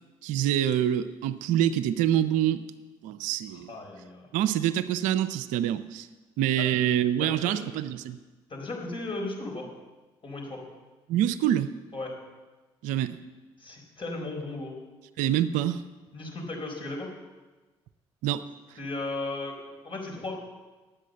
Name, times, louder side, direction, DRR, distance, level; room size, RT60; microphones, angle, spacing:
voice 1, 0.2-2.6 3.0-3.7 4.3-6.1 6.4-8.2 11.1-11.7 12.8-13.2 15.2-15.8 18.2-18.4, right 11 dB, 80° right, 12 dB, 0.5 m, -26 dB
voice 2, 3.5-4.3 6.6-6.7 7.2-7.5 8.5-9.7 10.2-10.6 11.9-12.1 13.6-14.8 16.1-17.1 18.8-20.3, left 2 dB, 40° left, 0 dB, 4.3 m, -36 dB
10.0 x 8.5 x 7.5 m, 1.2 s
hypercardioid pair, 55°, 13 cm